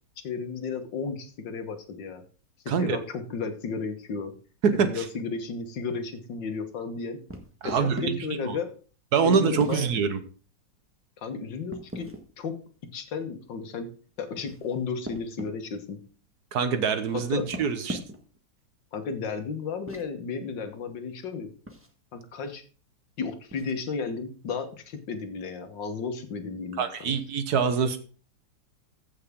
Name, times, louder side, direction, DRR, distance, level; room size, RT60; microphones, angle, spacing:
voice 1, 0.2-2.2 2.8-4.3 4.7-7.2 7.6-8.7 9.2-9.9 11.2-12.1 12.4-12.5 12.9-13.9 14.2-16.0 17.1-17.4 18.9-21.5 22.1-22.6 23.2-27.2, left 5 dB, 80° left, 7 dB, 2.0 m, -33 dB
voice 2, 2.7-3.0 4.6-5.0 7.6-8.2 8.4-8.6 9.1-10.2 16.5-18.0 26.8-28.0, right 6 dB, 65° right, 10 dB, 1.4 m, -25 dB
sound 1, 7.3-8.1 9.5-10.0 11.7-12.3 14.2-15.5 17.3-18.4 19.7-20.1 21.7-21.9 23.5-23.8, equal, 10° right, 1.2 m, -39 dB
15.0 x 5.7 x 3.7 m, 0.38 s
omnidirectional pair, 2.0 m